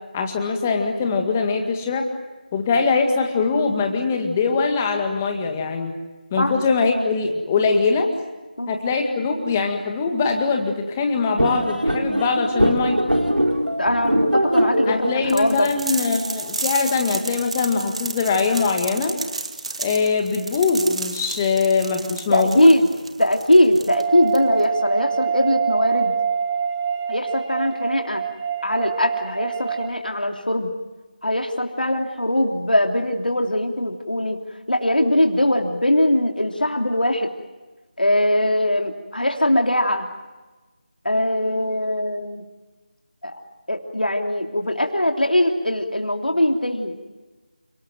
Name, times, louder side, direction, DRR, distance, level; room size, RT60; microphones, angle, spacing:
voice 1, 0.1-2.1 2.5-5.9 6.3-8.1 8.7-13.0 14.9-19.2 19.8-22.7, left 4 dB, 15° left, 4 dB, 2.0 m, -22 dB
sound 1, 11.4-16.5, equal, 90° right, 4.2 m, -22 dB
voice 2, 13.8-15.7 22.3-22.9 23.2-26.2 27.1-28.2 28.6-30.7 31.2-34.4 34.7-37.3 38.0-40.1 41.0-42.5 43.2-43.4 43.7-47.0, left 1 dB, 80° left, 3 dB, 3.1 m, -21 dB
sound 2, 15.3-24.7, right 3 dB, 40° right, 1.8 m, -32 dB
sound 3, 23.9-29.9, right 7 dB, 15° right, 2.2 m, -25 dB
29.0 x 19.0 x 9.2 m, 1.2 s
figure-of-eight pair, 165°, 5 cm